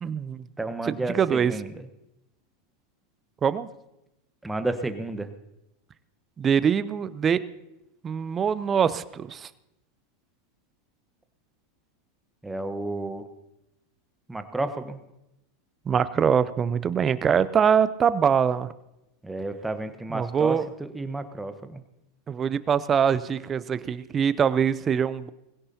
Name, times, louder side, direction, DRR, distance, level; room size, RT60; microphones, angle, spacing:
voice 1, 0.0-0.4 0.8-1.5 3.4-3.7 6.4-7.4 8.0-9.5 15.9-18.7 20.1-20.7 22.3-25.3, right 7 dB, 30° right, 15 dB, 0.6 m, -23 dB
voice 2, 0.6-1.8 4.4-5.3 12.4-13.2 14.3-15.0 19.2-21.8, right 2 dB, 10° right, 8 dB, 1.2 m, -31 dB
20.5 x 16.5 x 2.9 m, 0.90 s
hypercardioid pair, 100°, 0 cm